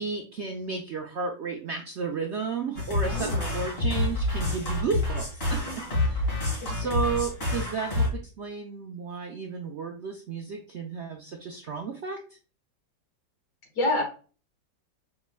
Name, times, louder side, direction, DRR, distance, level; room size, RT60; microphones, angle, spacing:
voice 1, 0.0-5.6 5.9-6.3 6.7-12.2, right 5 dB, 80° right, 2 dB, 0.6 m, -33 dB
sound 1, 2.8-8.1, left 2 dB, 35° left, 2.3 m, -28 dB
voice 2, 3.1-3.7 6.6-6.7 13.8-14.0, left 2 dB, 60° left, 1 dB, 2.0 m, -28 dB
5.3 x 4.0 x 2.2 m, 0.36 s
omnidirectional pair, 2.0 m